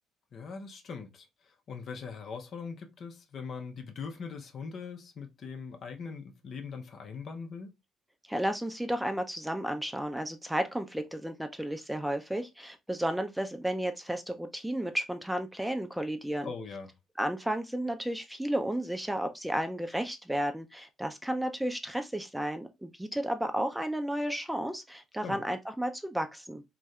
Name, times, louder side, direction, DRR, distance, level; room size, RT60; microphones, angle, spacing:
voice 1, 0.3-7.7 16.4-16.9 25.2-25.4, left 5 dB, 55° left, 0.7 m, -41 dB
voice 2, 8.3-16.5 17.2-26.6, right 1 dB, 5° right, 0.6 m, -33 dB
2.6 x 2.4 x 3.2 m
hypercardioid pair, 55°, 0 cm